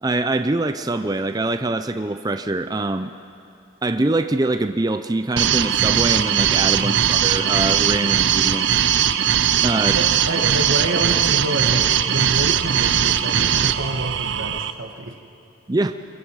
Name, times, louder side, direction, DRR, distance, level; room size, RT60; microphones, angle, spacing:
voice 1, 0.0-3.1 3.8-8.8 9.6-10.0 15.7-15.9, right 2 dB, 20° right, 9 dB, 0.4 m, -23 dB
sound 1, 5.4-14.7, right 9 dB, 65° right, 0.7 m, -19 dB
voice 2, 6.8-7.2 9.9-15.2, right 1 dB, 85° right, 4 dB, 1.8 m, -28 dB
26.0 x 23.0 x 4.8 m, 2.6 s
head